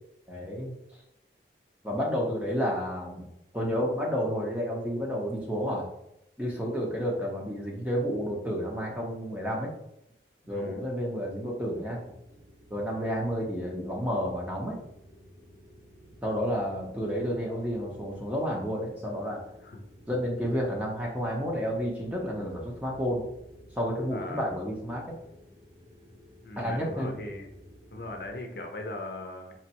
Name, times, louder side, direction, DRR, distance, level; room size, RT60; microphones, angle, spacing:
voice 1, 0.3-0.7 1.8-3.3 3.5-5.9 6.4-9.7 10.5-12.0 12.7-14.8 16.2-19.4 20.1-23.2 23.8-25.2 26.6-27.2, equal, 10° right, -2 dB, 0.9 m, -30 dB
voice 2, 10.4-10.8 19.6-19.8 24.1-24.5 26.4-27.5 27.9-29.5, left 2 dB, 60° left, 3 dB, 0.7 m, -39 dB
sound 1, 11.2-28.3, equal, 45° right, 1.4 m, -54 dB
4.4 x 3.2 x 2.9 m, 0.83 s
head